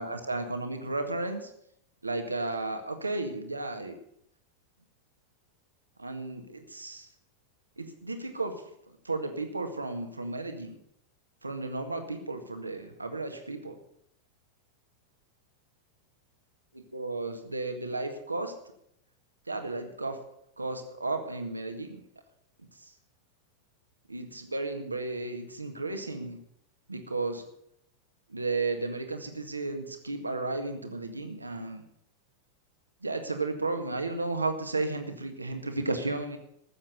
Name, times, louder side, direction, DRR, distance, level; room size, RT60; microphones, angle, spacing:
voice 1, 0.0-1.5 2.0-4.0 6.0-7.1 7.8-8.5 9.0-10.8 11.4-13.7 16.7-18.5 19.5-20.2 20.6-22.0 24.1-26.4 26.9-27.4 28.3-31.8 33.0-36.4, right 2 dB, 80° right, 6 dB, 1.8 m, -33 dB
14.0 x 7.5 x 8.3 m, 0.73 s
figure-of-eight pair, 90°, 0 cm